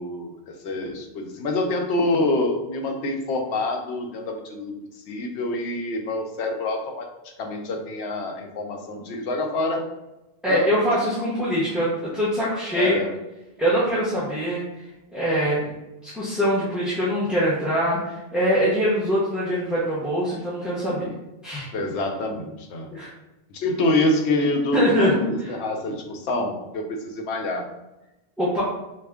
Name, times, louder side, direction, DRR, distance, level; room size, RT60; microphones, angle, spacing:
voice 1, 0.0-4.7 5.1-7.1 7.4-9.9 10.5-10.7 12.7-13.1 21.7-22.9 23.5-27.7, left 2 dB, 90° left, 4 dB, 0.9 m, -26 dB
voice 2, 10.4-13.0 13.6-14.6 15.1-15.7 16.0-21.1 21.4-21.7 22.9-23.1 24.7-25.5 28.4-28.6, equal, ahead, -10 dB, 0.7 m, -23 dB
3.4 x 2.4 x 3.4 m, 0.97 s
omnidirectional pair, 1.1 m